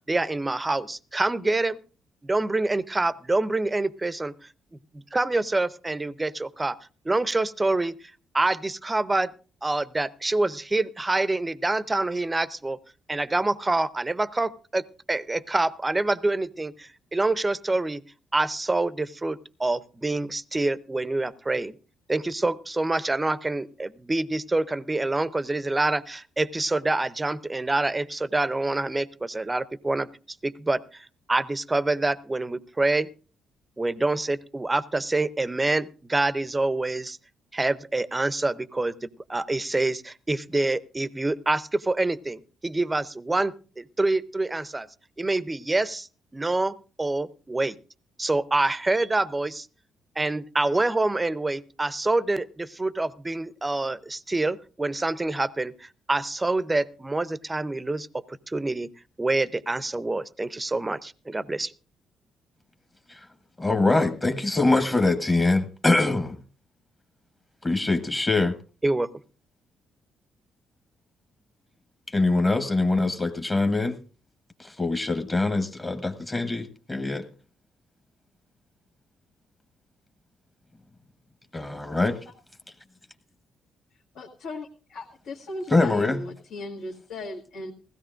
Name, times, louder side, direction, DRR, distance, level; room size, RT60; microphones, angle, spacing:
voice 1, 0.1-1.8 2.2-4.3 4.9-6.8 7.0-7.9 8.3-9.3 9.6-12.8 13.1-18.0 18.3-21.7 22.1-30.1 30.4-33.1 33.8-37.2 37.5-44.9 45.2-46.1 46.3-47.8 48.2-49.7 50.2-58.9 59.2-61.7 68.8-69.1, right 2 dB, 15° right, 17 dB, 0.5 m, -26 dB
voice 2, 63.6-66.4 67.6-68.5 72.1-74.0 74.6-77.2 81.5-82.2 85.7-86.2, left 2 dB, 25° left, 7 dB, 1.0 m, -23 dB
voice 3, 84.1-87.7, left 2 dB, 85° left, -4 dB, 1.8 m, -37 dB
20.0 x 16.0 x 2.5 m, 0.37 s
cardioid pair, 90°, 0 cm